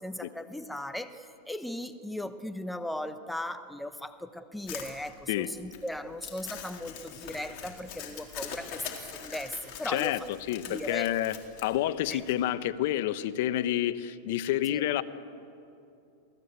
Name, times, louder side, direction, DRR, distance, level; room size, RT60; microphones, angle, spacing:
voice 1, 0.0-10.1 10.7-11.1 12.1-12.2 14.7-14.8, left 1 dB, 5° left, 9 dB, 1.0 m, -37 dB
Crumpling crinkling, 4.7-12.4, left 8 dB, 50° left, 4.2 m, -43 dB
voice 2, 9.9-11.4 11.6-15.0, left 13 dB, 65° left, 12 dB, 1.0 m, -29 dB
27.5 x 18.0 x 8.2 m, 2.7 s
supercardioid pair, 130°, 0 cm